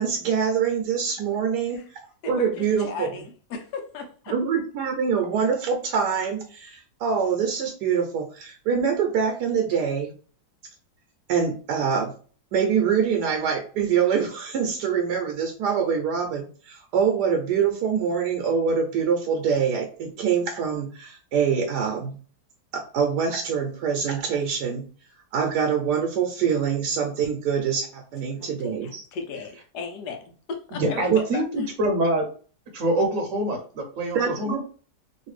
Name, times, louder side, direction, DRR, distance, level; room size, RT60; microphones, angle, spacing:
voice 1, 0.0-1.8 2.3-3.1 4.3-10.1 11.3-12.1 12.5-22.2 22.7-24.8 25.3-29.0 31.1-31.2 34.1-34.6, right 6 dB, 80° right, 1.2 m, -24 dB
voice 2, 2.2-4.3 28.4-31.7, left 4 dB, 80° left, 1.3 m, -36 dB
voice 3, 30.8-32.3 32.7-34.6, right 1 dB, 60° right, 0.9 m, -25 dB
3.1 x 2.5 x 3.1 m
omnidirectional pair, 1.8 m